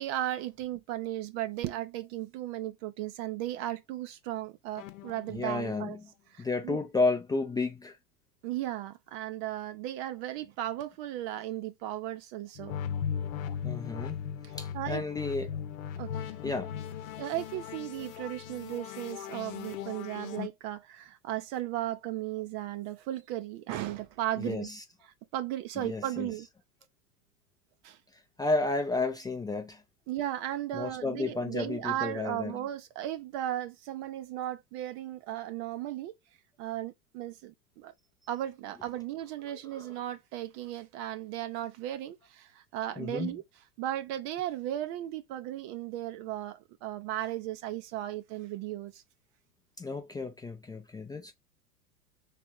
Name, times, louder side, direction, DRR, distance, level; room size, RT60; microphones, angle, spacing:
voice 1, 0.0-6.0 6.3-6.8 8.4-12.7 14.4-15.0 16.0-16.3 17.2-24.7 25.3-26.5 27.8-28.0 30.1-36.1 36.6-37.9 38.3-43.4 43.8-49.0, right 13 dB, 40° right, 0.6 m, -36 dB
sound 1, 4.8-5.7 12.5-20.5, left 8 dB, 60° left, 0.9 m, -38 dB
voice 2, 5.3-6.0 6.4-8.0 13.6-14.2 14.6-15.6 16.4-16.7 24.4-24.8 25.8-26.3 28.4-29.8 30.7-32.6 39.7-39.9 43.0-43.4 49.8-51.3, left 3 dB, 10° left, 0.5 m, -32 dB
3.4 x 3.4 x 4.4 m
hypercardioid pair, 95°, 46 cm